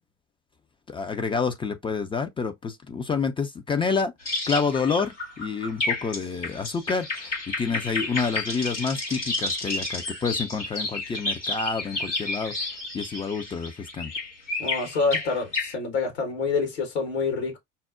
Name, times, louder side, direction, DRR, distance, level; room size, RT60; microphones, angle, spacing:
voice 1, 0.9-4.1 4.5-12.5 12.9-14.1, left 5 dB, 15° left, 0.4 m, -28 dB
sound 1, 4.2-15.7, left 2 dB, 90° left, 1.2 m, -31 dB
voice 2, 14.6-17.6, left 4 dB, 70° left, 1.3 m, -27 dB
5.4 x 2.0 x 2.4 m
figure-of-eight pair, 65°, 35 cm